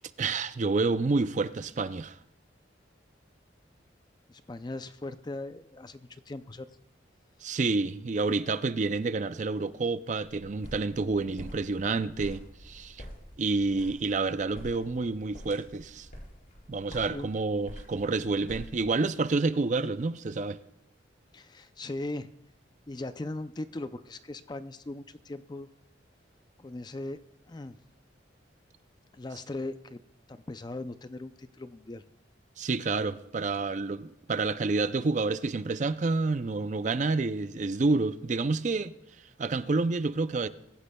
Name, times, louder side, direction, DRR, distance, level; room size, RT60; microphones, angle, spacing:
voice 1, 0.2-2.2 7.4-13.0 13.4-16.1 16.7-20.6 32.6-38.9 39.4-40.5, right 3 dB, 40° right, 0.5 m, -29 dB
voice 2, 4.3-6.7 7.5-7.6 17.1-17.3 21.3-22.3 22.9-25.7 26.6-27.2 27.5-27.8 29.1-30.0 30.3-32.0, left 2 dB, 20° left, 0.4 m, -39 dB
sound 1, 10.2-18.9, equal, 50° left, 4.9 m, -47 dB
24.0 x 15.0 x 2.3 m
head